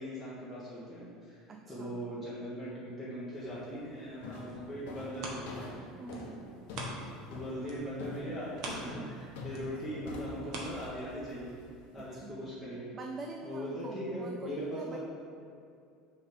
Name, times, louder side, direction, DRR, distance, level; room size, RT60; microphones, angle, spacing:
voice 1, 0.0-1.4 1.7-5.7 7.3-11.5 11.9-12.9 13.4-15.0, equal, ahead, -11 dB, 1.3 m, -40 dB
voice 2, 1.5-2.1 6.0-6.4 8.8-9.2 12.0-12.5 12.9-15.0, right 3 dB, 25° right, 3 dB, 0.4 m, -45 dB
sound 1, 3.4-3.7 4.2-12.2, left 3 dB, 90° left, 1.0 m, -45 dB
sound 2, 4.4-7.3 7.6-11.4 11.9-12.0, right 2 dB, 50° right, 1.1 m, -45 dB
6.2 x 3.5 x 6.0 m, 2.5 s
cardioid pair, 155°, 0 cm